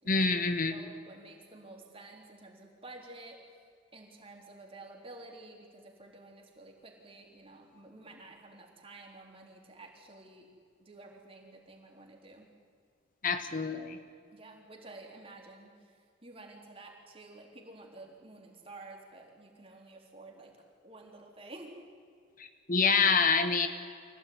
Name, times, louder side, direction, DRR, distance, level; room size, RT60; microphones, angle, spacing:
voice 1, 0.1-0.8 13.2-14.0 22.4-23.7, left 5 dB, 45° left, 8 dB, 1.3 m, -27 dB
voice 2, 0.7-3.6 3.9-10.5 10.8-12.5 14.3-15.9 16.2-20.6 20.8-21.8, right 2 dB, 30° right, 0 dB, 3.9 m, -51 dB
25.0 x 16.5 x 9.6 m, 2.3 s
head